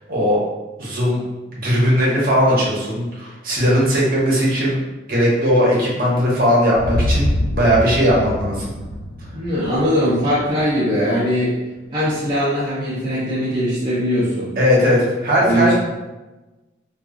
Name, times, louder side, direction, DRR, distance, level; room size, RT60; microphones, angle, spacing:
voice 1, 0.1-0.4 0.8-1.2 1.5-4.8 5.1-8.7 14.6-15.7, equal, 50° right, -6 dB, 0.8 m, -18 dB
sound 1, 6.7-10.8, left 1 dB, 50° left, 0.3 m, -25 dB
voice 2, 9.3-11.6 11.9-14.5 15.4-15.7, equal, 30° right, -10 dB, 0.5 m, -20 dB
2.7 x 2.3 x 2.4 m, 1.1 s
head